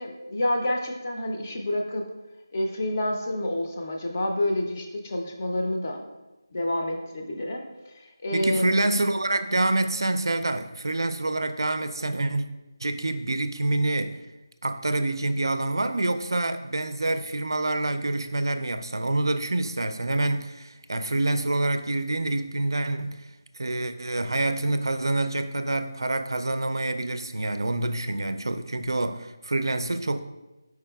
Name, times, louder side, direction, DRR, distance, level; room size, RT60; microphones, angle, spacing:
voice 1, 0.0-2.0 2.5-6.1 6.5-8.9, left 1 dB, 35° left, 1 dB, 0.5 m, -28 dB
voice 2, 8.3-12.5 12.8-14.2 14.6-23.3 23.5-30.2, right 2 dB, 80° right, 10 dB, 0.3 m, -27 dB
4.6 x 4.6 x 2.2 m, 1.0 s
figure-of-eight pair, 170°, 2 cm